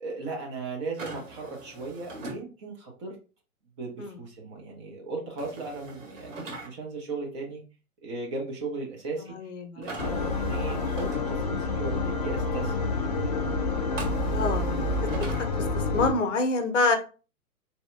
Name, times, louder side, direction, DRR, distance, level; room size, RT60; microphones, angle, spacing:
voice 1, 0.0-3.2 3.8-7.6 8.0-9.3 9.8-12.7 14.6-14.9, right 3 dB, 20° right, 0 dB, 0.5 m, -36 dB
sound 1, 1.0-2.4 5.4-6.7 9.8-11.2 14.0-15.5, right 2 dB, 60° right, 1.6 m, -41 dB
voice 2, 9.3-9.9 10.2-10.3 14.3-14.7 15.2-15.3 15.9-17.0, left 3 dB, 60° left, 7 dB, 0.8 m, -26 dB
sound 2, 10.0-16.1, left 3 dB, 30° left, 0.4 m, -28 dB
4.1 x 2.7 x 2.4 m, 0.35 s
figure-of-eight pair, 110°, 43 cm